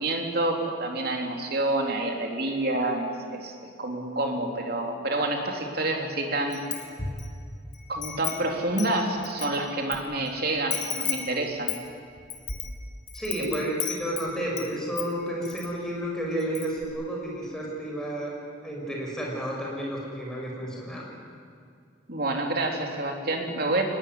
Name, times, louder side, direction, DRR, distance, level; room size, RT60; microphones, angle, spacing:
voice 1, 0.0-6.6 7.9-11.7 13.4-13.5 22.1-23.8, right 2 dB, 55° right, 2 dB, 3.5 m, -28 dB
Wind chime, 6.5-7.3 7.7-10.0 10.3-10.4 10.7-14.7 15.0-15.7 16.0-16.1 16.4-16.9, left 7 dB, 40° left, 2.2 m, -34 dB
voice 2, 13.1-18.3 18.6-21.1, right 1 dB, 5° left, -3 dB, 6.6 m, -31 dB
23.5 x 20.0 x 9.7 m, 2.3 s
head